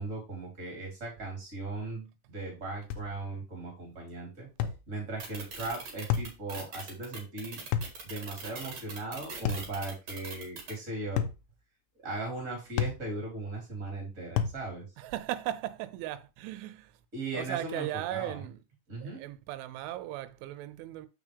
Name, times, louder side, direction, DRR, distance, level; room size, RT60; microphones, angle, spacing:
voice 1, 0.0-7.6 8.0-11.2 12.0-14.8 17.1-18.4 18.9-19.2, right 2 dB, 20° right, 2.6 m, -38 dB
sound 1, 2.9-3.1 4.6-4.8 6.1-6.4 7.7-8.0 9.5-9.7 11.2-11.4 12.8-13.0 14.4-14.6, left 9 dB, 80° left, 2.5 m, -30 dB
sound 2, 5.2-10.7, right 4 dB, 55° right, 2.2 m, -41 dB
voice 2, 15.0-16.9 17.3-18.6 19.0-21.1, right 14 dB, 90° right, 3.1 m, -37 dB
7.2 x 5.9 x 3.4 m
omnidirectional pair, 5.4 m